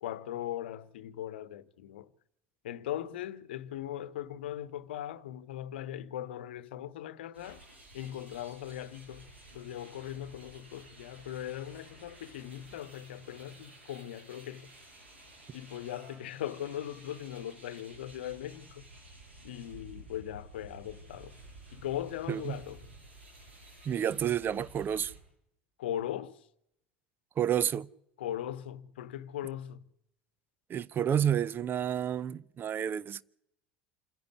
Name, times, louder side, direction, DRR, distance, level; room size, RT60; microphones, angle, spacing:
voice 1, 0.0-2.1 2.6-7.6 7.9-9.2 9.5-14.7 15.5-18.8 19.4-21.3 21.7-22.8 25.8-26.4 28.2-29.8, left 11 dB, 70° left, 1.0 m, -39 dB
sound 1, 7.3-25.2, right 1 dB, 85° right, 8.0 m, -53 dB
voice 2, 22.3-22.6 23.9-25.1 27.4-27.9 30.7-33.2, right 9 dB, 35° right, 0.7 m, -30 dB
27.5 x 10.5 x 9.7 m
figure-of-eight pair, 70°, 6 cm